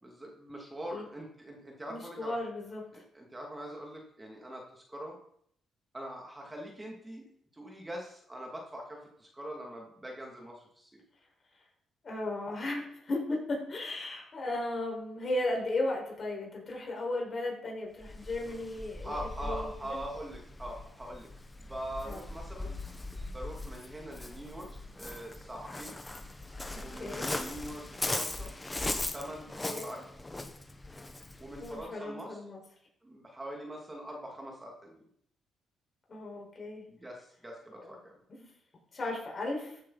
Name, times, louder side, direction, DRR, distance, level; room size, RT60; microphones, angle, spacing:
voice 1, 0.0-2.4 2.9-5.2 5.9-7.3 7.5-11.0 19.0-21.3 21.6-24.7 25.0-26.0 26.7-28.5 29.1-30.0 31.4-32.4 33.0-35.0 36.9-38.2, right 1 dB, 15° right, 0 dB, 2.7 m, -43 dB
voice 2, 1.9-2.8 12.0-20.0 22.0-22.2 26.7-27.3 29.6-29.9 31.6-32.6 36.1-36.9 38.3-38.5 38.9-39.8, left 2 dB, 40° left, -1 dB, 5.2 m, -35 dB
Waves surf, 18.0-31.9, left 2 dB, 15° left, 1.4 m, -40 dB
14.0 x 8.6 x 4.2 m, 0.67 s
cardioid pair, 90°, 0 cm